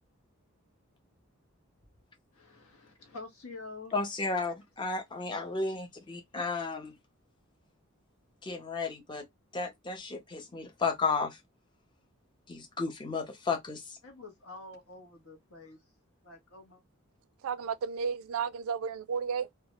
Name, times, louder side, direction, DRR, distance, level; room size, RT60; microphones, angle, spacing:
voice 1, 2.3-4.0 14.0-15.8 16.2-16.8, left 3 dB, 80° left, 0.9 m, -47 dB
voice 2, 3.9-7.0 8.4-9.3 9.5-11.4 12.5-14.0, left 4 dB, 20° left, 0.5 m, -33 dB
voice 3, 17.4-19.5, right 6 dB, 75° right, 0.3 m, -33 dB
2.2 x 2.0 x 2.9 m
head